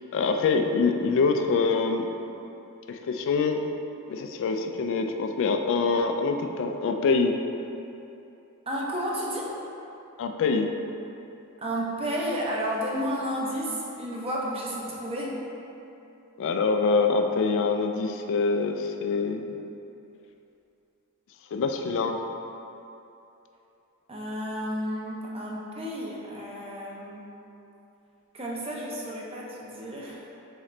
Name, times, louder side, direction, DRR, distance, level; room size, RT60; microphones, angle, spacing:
voice 1, 0.0-2.1 2.9-3.7 4.1-7.4 10.2-10.7 16.4-19.4 21.5-22.2, left 4 dB, 60° left, 5 dB, 0.3 m, -25 dB
voice 2, 8.7-9.5 11.6-15.4 24.1-27.3 28.3-30.2, equal, 25° right, -4 dB, 0.6 m, -32 dB
4.0 x 3.7 x 3.2 m, 2.9 s
head